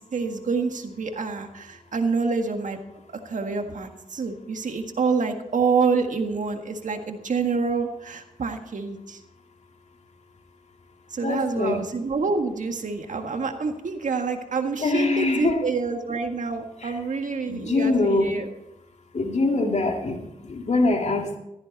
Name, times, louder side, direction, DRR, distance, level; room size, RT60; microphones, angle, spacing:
voice 1, 0.1-2.8 3.2-9.2 11.1-18.5, right 4 dB, 70° right, 5 dB, 1.7 m, -27 dB
voice 2, 11.2-11.9 14.8-15.7 16.8-17.0 17.5-18.4 19.1-21.4, left 3 dB, 55° left, 3 dB, 2.3 m, -24 dB
15.0 x 13.5 x 4.1 m, 0.89 s
cardioid pair, 65°, 14 cm